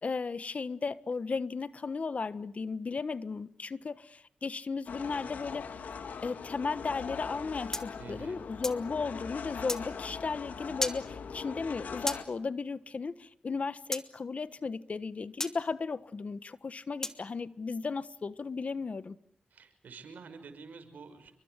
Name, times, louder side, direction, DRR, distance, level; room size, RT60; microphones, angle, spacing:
voice 1, 0.0-5.7 6.2-19.2, left 4 dB, 55° left, 1.4 m, -35 dB
sound 1, 4.9-12.2, left 6 dB, 85° left, 2.5 m, -41 dB
sound 2, 7.7-8.9 9.7-9.8 10.8-11.0 12.1-12.2 13.9-14.1 15.4-15.6 17.0-17.2, left 1 dB, 20° left, 2.8 m, -34 dB
voice 2, 8.0-8.4 19.5-21.3, right 4 dB, 85° right, 5.9 m, -48 dB
29.5 x 24.0 x 8.2 m
cardioid pair, 55°, 3 cm